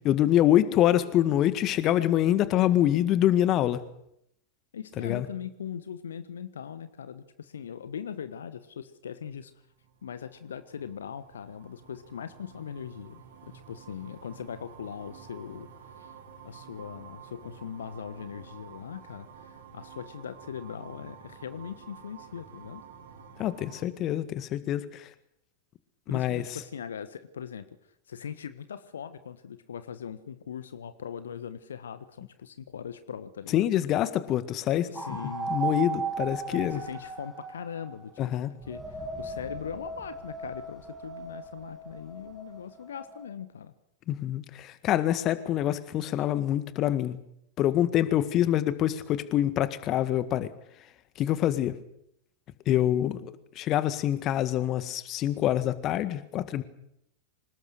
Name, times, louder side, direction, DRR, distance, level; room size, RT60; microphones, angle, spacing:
voice 1, 0.0-3.8 5.0-5.2 23.4-25.1 26.1-26.4 33.5-34.9 35.5-36.8 38.2-38.5 44.1-47.2 47.6-50.5 51.2-51.7 52.6-56.6, left 12 dB, 35° left, 13 dB, 1.7 m, -25 dB
voice 2, 4.7-9.5 10.0-15.7 16.0-16.1 16.4-22.8 26.1-27.7 28.1-33.7 34.9-35.5 36.6-38.3 38.7-43.7, left 8 dB, 65° left, 12 dB, 1.3 m, -40 dB
sound 1, 9.5-23.9, right 7 dB, 60° right, 3.3 m, -50 dB
sound 2, 34.9-38.1 38.6-43.2, right 4 dB, 15° right, 6.3 m, -36 dB
26.5 x 19.0 x 6.7 m, 0.76 s
figure-of-eight pair, 90°, 0 cm